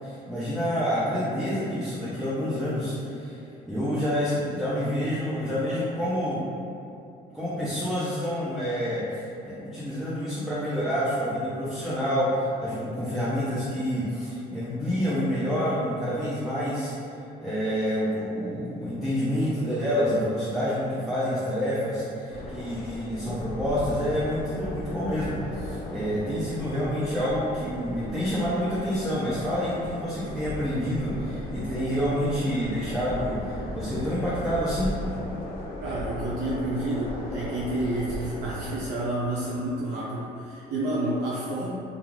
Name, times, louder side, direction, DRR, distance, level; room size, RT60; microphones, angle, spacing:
voice 1, 0.0-3.4 3.6-6.4 7.3-16.9 17.4-34.9, equal, ahead, -11 dB, 0.5 m, -28 dB
sound 1, 22.3-38.9, left 1 dB, 65° left, 0.5 m, -37 dB
voice 2, 35.8-41.7, right 1 dB, 75° right, -6 dB, 0.5 m, -29 dB
2.4 x 2.3 x 3.1 m, 2.6 s
cardioid pair, 110°, 17 cm